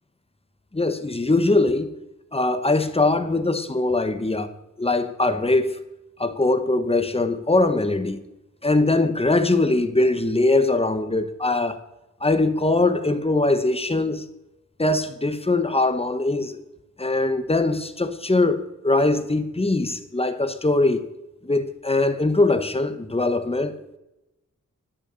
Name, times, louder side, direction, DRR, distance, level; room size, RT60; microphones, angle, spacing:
voice 1, 0.7-1.9 2.3-4.5 4.8-5.8 6.2-8.2 8.6-11.8 12.2-14.2 14.8-16.6 17.0-21.0 21.4-23.8, left 2 dB, 20° left, 1.1 m, -21 dB
12.0 x 6.6 x 6.8 m
wide cardioid pair, 95°, 31 cm